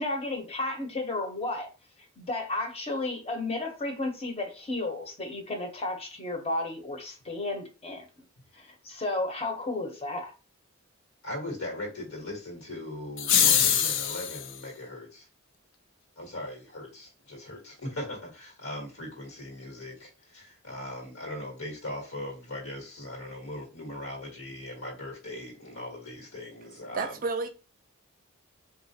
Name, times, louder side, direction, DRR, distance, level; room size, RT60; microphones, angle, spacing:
voice 1, 0.0-1.7 2.2-8.1 8.5-10.3, left 2 dB, 30° left, 0.7 m, -33 dB
voice 2, 11.2-15.3 16.2-27.2, left 1 dB, 85° left, 1.3 m, -39 dB
sound 1, 13.2-14.5, left 9 dB, 60° left, 0.4 m, -23 dB
voice 3, 26.9-27.5, right 3 dB, 40° right, 0.5 m, -30 dB
3.8 x 2.4 x 2.7 m
head